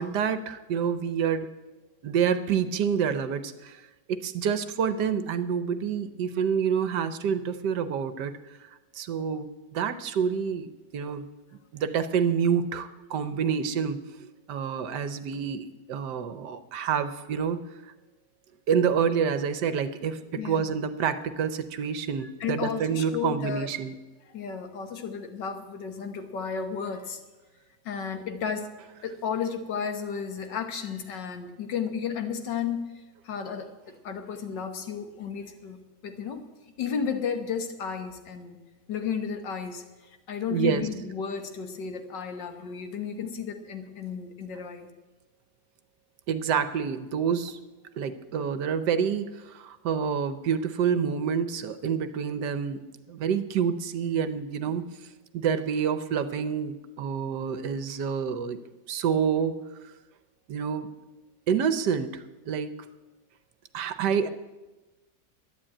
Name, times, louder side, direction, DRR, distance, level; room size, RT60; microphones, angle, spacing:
voice 1, 0.0-1.5 2.0-8.7 8.9-11.3 11.7-17.6 18.7-24.0 40.5-40.8 46.3-47.6 48.0-52.8 53.1-54.9 55.3-58.6 58.9-59.5 60.5-60.9 61.5-62.8 63.7-64.3, right 7 dB, 70° right, 12 dB, 1.3 m, -28 dB
voice 2, 20.4-20.8 22.2-23.7 24.3-27.2 27.9-28.7 29.0-32.9 33.2-36.5 36.8-38.6 38.9-39.8 40.3-44.9, left 6 dB, 70° left, 7 dB, 1.8 m, -33 dB
11.5 x 10.0 x 8.7 m, 1.1 s
omnidirectional pair, 2.0 m